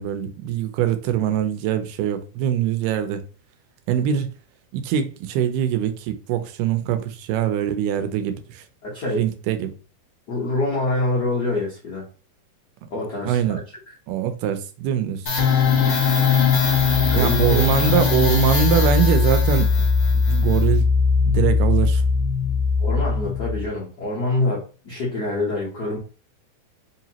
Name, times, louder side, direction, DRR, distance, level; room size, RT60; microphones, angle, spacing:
voice 1, 0.0-3.2 3.9-4.3 4.7-8.6 9.1-9.7 13.3-13.6 14.1-15.2 17.2-19.9 20.1-20.9 21.2-22.0, right 9 dB, 90° right, 2.2 m, -23 dB
voice 2, 8.8-9.2 10.3-12.0 12.9-13.6 17.1-17.6 22.8-26.0, left 2 dB, 75° left, 0.9 m, -25 dB
sound 1, 15.3-23.7, left 5 dB, 40° left, 2.0 m, -19 dB
4.8 x 2.9 x 2.8 m
omnidirectional pair, 3.7 m